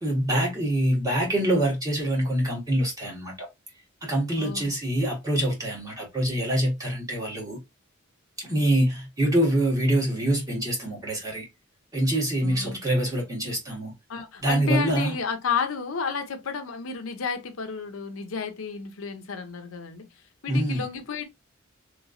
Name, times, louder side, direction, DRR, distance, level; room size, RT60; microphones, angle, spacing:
voice 1, 0.0-3.5 4.0-7.6 8.4-11.4 11.9-13.9 14.4-15.1 20.5-20.9, right 1 dB, 20° right, 1.4 m, -25 dB
voice 2, 4.4-4.7 8.5-8.6 12.4-12.8 14.1-20.1 20.4-21.2, left 6 dB, 85° left, 0.7 m, -31 dB
3.2 x 3.0 x 2.5 m
head